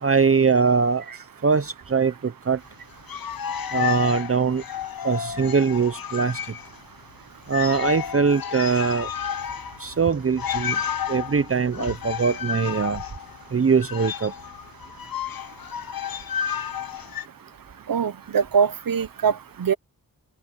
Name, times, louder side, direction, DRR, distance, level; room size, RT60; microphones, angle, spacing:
voice 1, 0.0-1.0 1.4-2.6 3.7-4.6 5.0-6.4 7.5-9.1 9.8-10.8 11.1-13.0 13.5-14.3, right 5 dB, 40° right, 0.8 m, -22 dB
sound 1, 2.9-6.8 7.1-7.2 7.5-17.3, left 8 dB, 85° left, 0.9 m, -32 dB
voice 2, 17.9-19.7, right 6 dB, 75° right, 0.9 m, -23 dB
open air
wide cardioid pair, 95°, 34 cm